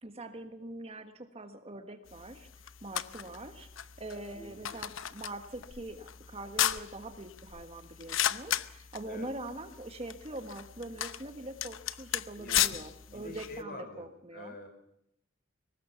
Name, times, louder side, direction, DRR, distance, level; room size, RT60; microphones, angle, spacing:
voice 1, 0.0-2.5 2.8-14.5, right 1 dB, 30° right, 8 dB, 1.5 m, -43 dB
sound 1, 2.1-13.6, left 11 dB, 65° left, 0.8 m, -36 dB
voice 2, 4.3-4.8 9.1-9.3 12.4-14.7, left 1 dB, 45° left, 6 dB, 5.4 m, -46 dB
23.0 x 19.5 x 5.9 m, 0.78 s
head